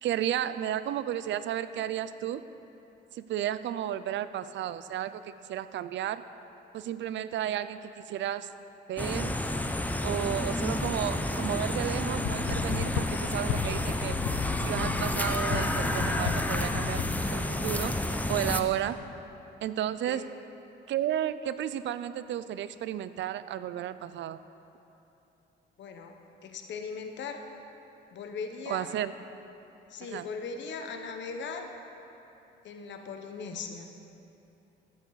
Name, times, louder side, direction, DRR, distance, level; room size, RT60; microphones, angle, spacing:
voice 1, 0.0-2.4 3.1-6.2 6.7-8.5 8.9-9.4 10.0-14.2 14.6-17.0 17.3-17.9 18.3-19.0 19.6-20.3 20.9-24.4 28.7-29.1 30.0-30.3, right 11 dB, 70° right, 14 dB, 0.5 m, -33 dB
sound 1, 9.0-18.6, left 1 dB, 10° left, 0.6 m, -30 dB
sound 2, 12.2-17.3, left 9 dB, 85° left, 0.5 m, -35 dB
voice 2, 25.8-27.4 28.1-28.9 29.9-31.7 32.6-33.9, left 5 dB, 65° left, 5 dB, 1.1 m, -39 dB
13.5 x 9.4 x 4.0 m, 2.9 s
cardioid pair, 90°, 20 cm